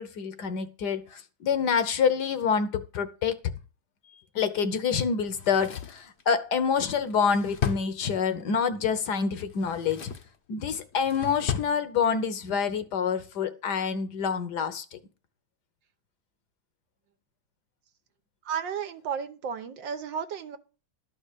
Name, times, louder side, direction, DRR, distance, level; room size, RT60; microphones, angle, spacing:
voice 1, 0.0-3.4 4.3-10.1 10.5-15.0, left 6 dB, 65° left, 1.4 m, -27 dB
Drawer open or close, 5.3-8.6 9.4-10.4 10.7-11.8 12.1-12.2, left 8 dB, 50° left, 0.9 m, -35 dB
voice 2, 18.4-20.6, right 7 dB, 75° right, 1.6 m, -33 dB
12.0 x 4.3 x 8.3 m
omnidirectional pair, 2.1 m